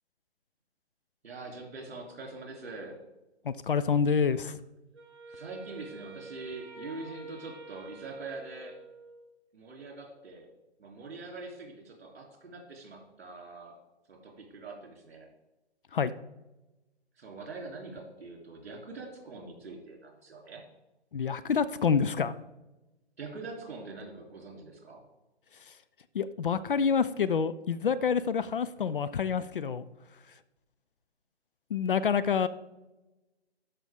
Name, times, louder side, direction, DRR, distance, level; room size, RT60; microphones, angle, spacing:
voice 1, 1.2-3.0 5.3-8.8 9.5-10.5 10.8-13.8 14.1-15.3 17.2-20.6 23.2-25.0, right 3 dB, 60° right, 1 dB, 3.2 m, -43 dB
voice 2, 3.4-4.6 15.9-16.1 21.1-22.3 25.7-25.8 26.1-29.8 31.7-32.5, left 6 dB, 50° left, 14 dB, 0.5 m, -27 dB
Wind instrument woodwind instrument, 4.9-9.3, right 2 dB, 20° right, 3.5 m, -48 dB
12.5 x 5.6 x 3.6 m, 1.0 s
hypercardioid pair, 155°, 34 cm